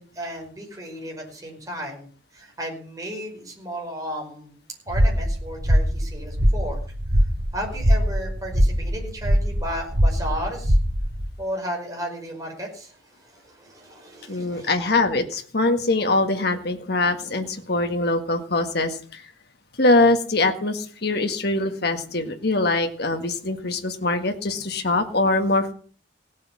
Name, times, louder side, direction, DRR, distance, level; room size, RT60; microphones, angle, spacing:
voice 1, 0.0-4.6 4.9-6.8 7.5-10.8 11.4-14.7, equal, 20° right, 0 dB, 5.3 m, -34 dB
sound 1, 4.9-11.3, equal, 90° right, 2.4 m, -22 dB
voice 2, 14.3-19.2 19.8-25.7, left 2 dB, 55° left, 6 dB, 1.8 m, -23 dB
17.0 x 8.4 x 7.4 m, 0.43 s
head